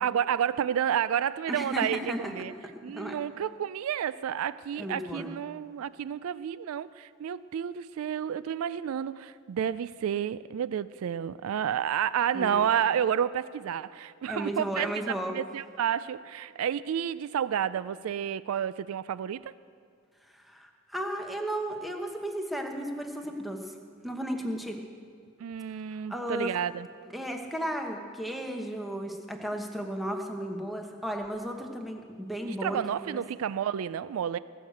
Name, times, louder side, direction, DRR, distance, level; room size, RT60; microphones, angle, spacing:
voice 1, 0.0-2.5 2.8-19.5 25.4-26.9 32.5-34.4, right 9 dB, 90° right, 17 dB, 0.3 m, -30 dB
voice 2, 1.5-2.3 2.9-3.2 4.8-5.3 12.3-12.6 14.3-15.3 20.3-23.7 24.0-24.8 26.1-26.5 27.1-33.2, equal, ahead, 2 dB, 1.1 m, -34 dB
19.5 x 6.5 x 7.9 m, 2.3 s
head